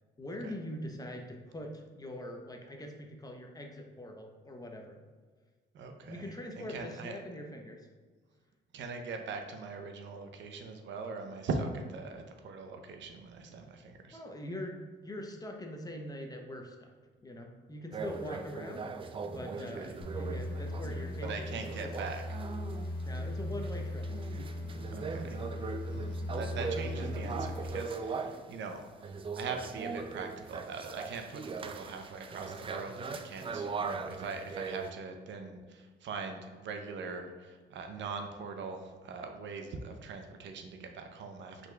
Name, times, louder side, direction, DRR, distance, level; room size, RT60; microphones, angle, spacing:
voice 1, 0.2-5.0 6.0-7.9 13.5-13.6 14.1-16.9 17.2-22.1 23.0-24.1, left 1 dB, 20° left, 2 dB, 0.7 m, -43 dB
voice 2, 5.7-6.2 6.7-7.1 8.7-14.2 19.6-19.9 21.3-22.2 24.9-25.4 25.9-28.8 29.3-41.7, right 4 dB, 70° right, 5 dB, 0.6 m, -41 dB
sound 1, 17.9-28.5 29.0-34.9, right 5 dB, 25° right, 0.3 m, -40 dB
sound 2, 20.0-27.7, left 1 dB, 50° left, 1.2 m, -38 dB
5.6 x 4.0 x 2.3 m, 1.5 s
cardioid pair, 90°, 20 cm